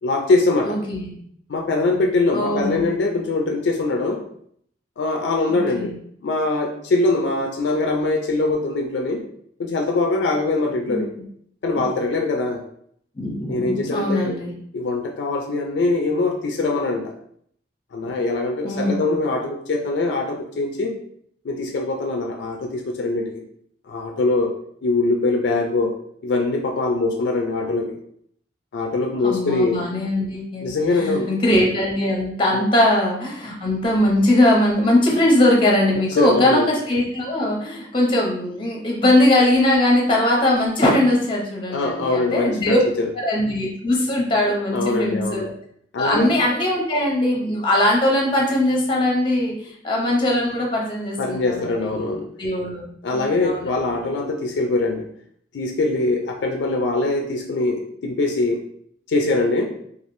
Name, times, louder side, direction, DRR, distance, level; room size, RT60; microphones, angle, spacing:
voice 1, 0.0-0.8 1.5-4.2 5.0-5.9 6.2-9.2 9.6-11.1 11.6-12.6 13.5-14.4 14.7-17.1 17.9-20.9 21.4-23.4 23.9-24.5 24.8-25.9 26.2-28.0 28.7-29.8 30.6-31.3 32.5-32.7 35.9-36.7 41.7-43.1 44.7-45.5 45.9-46.3 51.2-52.3 53.0-55.1 55.5-58.6 59.1-59.7, left 2 dB, 75° left, 2 dB, 0.4 m, -22 dB
voice 2, 0.6-1.1 2.3-2.9 5.5-5.9 10.9-11.0 13.2-14.5 18.6-19.1 29.2-42.8 43.2-45.5 46.0-49.6 49.8-52.0 52.4-53.7, left 1 dB, 30° left, -1 dB, 0.6 m, -20 dB
3.4 x 2.4 x 2.5 m, 0.66 s
head